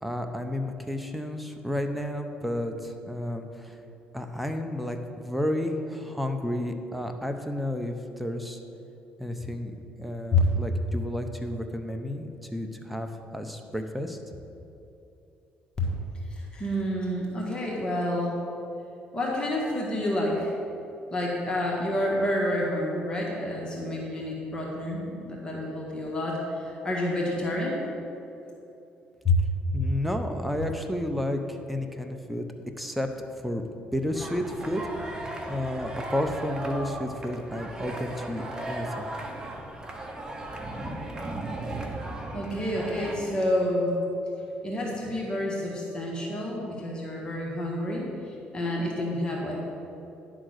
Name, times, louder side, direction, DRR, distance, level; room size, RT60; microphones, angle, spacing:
voice 1, 0.0-3.8 4.1-8.6 9.2-14.2 29.7-32.5 32.8-33.1 33.4-33.6 33.9-34.8 35.5-39.1, left 1 dB, ahead, 5 dB, 0.8 m, -31 dB
voice 2, 16.3-18.4 19.1-20.5 21.1-27.8 29.2-29.3 42.3-43.9 44.6-49.7, left 1 dB, 25° left, -3 dB, 1.6 m, -29 dB
sound 1, 34.1-43.2, right 1 dB, 20° right, 1.1 m, -36 dB
10.0 x 3.8 x 6.4 m, 2.9 s
cardioid pair, 85°, 3 cm